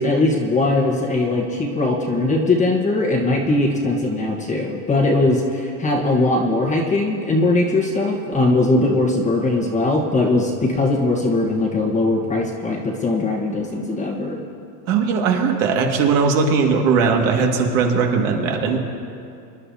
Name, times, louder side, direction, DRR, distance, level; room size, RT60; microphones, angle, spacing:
voice 1, 0.0-14.4, left 2 dB, 15° left, 0 dB, 1.3 m, -20 dB
voice 2, 14.9-18.8, right 5 dB, 55° right, 1 dB, 2.1 m, -19 dB
25.5 x 11.0 x 2.8 m, 2.5 s
supercardioid pair, 135°, 49 cm